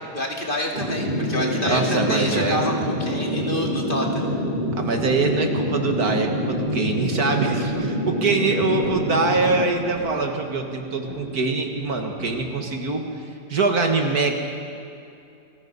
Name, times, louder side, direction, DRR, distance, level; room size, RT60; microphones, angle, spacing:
voice 1, 0.1-4.3 7.5-7.7, left 1 dB, 30° left, 0 dB, 2.6 m, -28 dB
sound 1, 0.7-9.6, equal, 30° right, 4.7 m, -26 dB
voice 2, 1.6-2.6 4.8-13.0 13.5-14.4, right 3 dB, 55° right, 4 dB, 2.1 m, -23 dB
sound 2, 4.3-12.9, equal, 50° left, 5.0 m, -40 dB
28.5 x 20.5 x 5.5 m, 2.6 s
omnidirectional pair, 1.9 m